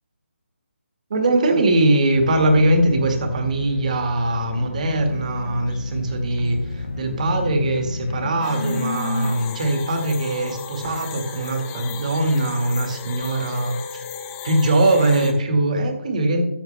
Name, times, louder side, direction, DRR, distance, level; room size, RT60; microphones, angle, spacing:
voice 1, 1.1-13.8 14.4-16.4, right 1 dB, 35° right, 5 dB, 1.9 m, -21 dB
sound 1, 2.1-8.3, left 2 dB, 65° left, 1.1 m, -31 dB
sound 2, 4.8-6.9 7.2-10.2, left 3 dB, 25° left, 1.3 m, -33 dB
sound 3, 8.4-15.3, left 7 dB, 10° left, 0.4 m, -35 dB
13.5 x 7.3 x 3.3 m, 0.84 s
hypercardioid pair, 170°, 7 cm